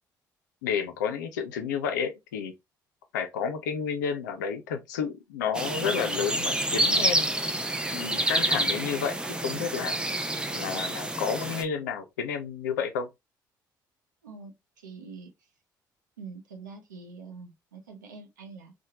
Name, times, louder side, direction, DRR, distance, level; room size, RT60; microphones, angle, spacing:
voice 1, 0.6-2.5 3.1-7.3 7.9-10.0 10.5-13.1, left 7 dB, 80° left, 0.4 m, -31 dB
sound 1, 5.5-11.6, right 1 dB, 10° right, 0.5 m, -28 dB
voice 2, 14.8-15.5 16.2-18.7, right 4 dB, 90° right, 0.6 m, -45 dB
3.0 x 2.1 x 2.8 m
hypercardioid pair, 45°, 10 cm